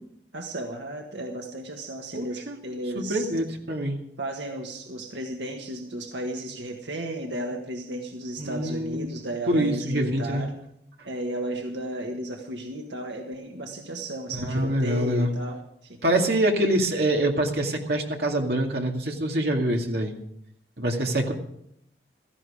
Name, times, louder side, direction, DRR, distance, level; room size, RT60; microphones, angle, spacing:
voice 1, 0.3-3.3 4.2-10.5 11.0-16.0, right 1 dB, 85° right, 2 dB, 1.6 m, -34 dB
voice 2, 2.1-2.6 3.0-4.0 8.4-9.1 9.5-10.5 14.4-15.3 16.0-20.1 20.8-21.3, right 1 dB, 60° right, 1 dB, 2.4 m, -25 dB
16.5 x 14.0 x 5.0 m, 0.72 s
head